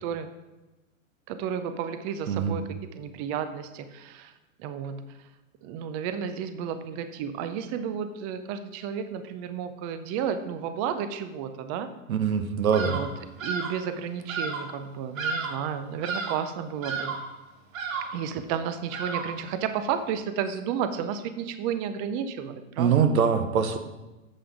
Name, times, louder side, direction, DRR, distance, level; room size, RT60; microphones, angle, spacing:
voice 1, 1.3-2.6 3.0-4.3 4.6-5.0 5.6-11.9 12.8-13.1 13.4-17.2 18.1-23.0, right 8 dB, 25° right, 10 dB, 0.4 m, -32 dB
voice 2, 2.3-2.6 12.1-13.0 22.8-23.8, right 6 dB, 85° right, 9 dB, 1.1 m, -23 dB
Bird vocalization bird call bird song, 12.7-13.1 13.4-13.8 14.3-14.7 15.2-15.7 16.0-16.5 16.8-17.3 17.7-18.2 18.9-19.4, right 4 dB, 70° right, 1.6 m, -32 dB
7.8 x 6.0 x 4.8 m, 1.1 s
hypercardioid pair, 125°, 42 cm